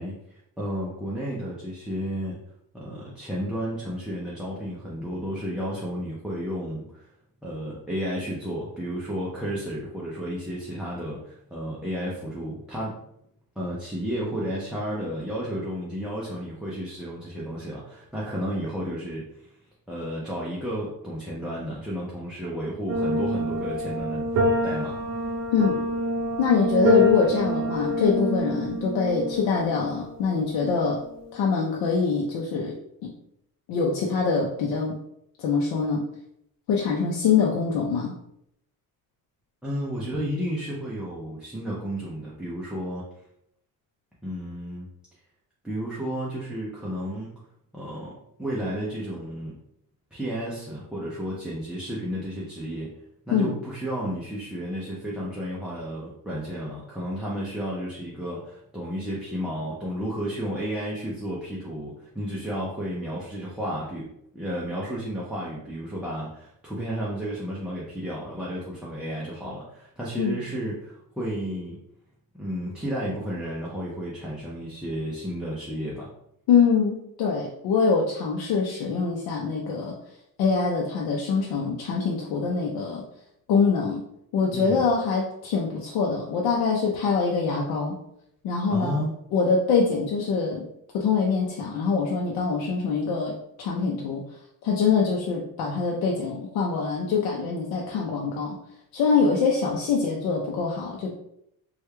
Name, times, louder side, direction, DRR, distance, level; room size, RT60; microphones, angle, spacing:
voice 1, 0.0-2.4 2.7-7.1 7.4-13.0 13.6-19.5 19.9-24.3 24.6-25.0 39.6-43.0 44.2-44.9 45.6-47.4 47.7-49.6 50.1-52.9 53.3-64.1 64.3-71.8 72.4-76.1 84.5-84.9 88.7-89.1, equal, 5° right, -6 dB, 0.4 m, -32 dB
sound 1, 22.9-31.3, left 1 dB, 50° right, 0.6 m, -26 dB
voice 2, 26.4-31.0 31.3-32.8 33.0-33.1 33.7-35.0 35.4-36.1 36.7-38.1 53.3-53.5 70.2-70.4 76.5-80.0 80.4-83.0 83.5-84.1 84.3-88.0 88.4-89.0 89.3-90.7 90.9-94.2 94.6-98.6 98.9-101.2, left 5 dB, 80° left, -2 dB, 0.6 m, -24 dB
3.1 x 2.3 x 3.2 m, 0.75 s
cardioid pair, 160°, 36 cm